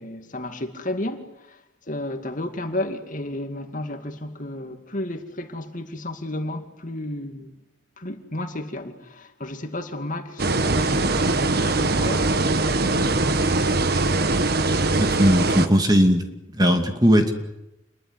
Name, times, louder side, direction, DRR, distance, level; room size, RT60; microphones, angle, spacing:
voice 1, 0.0-1.6 1.9-7.6 8.0-12.7, left 1 dB, 40° left, 2.3 m, -32 dB
sound 1, 10.4-15.7, right 2 dB, 55° right, 1.4 m, -21 dB
voice 2, 15.0-16.2 16.5-17.3, equal, 20° right, 2.5 m, -18 dB
28.0 x 22.5 x 8.2 m
head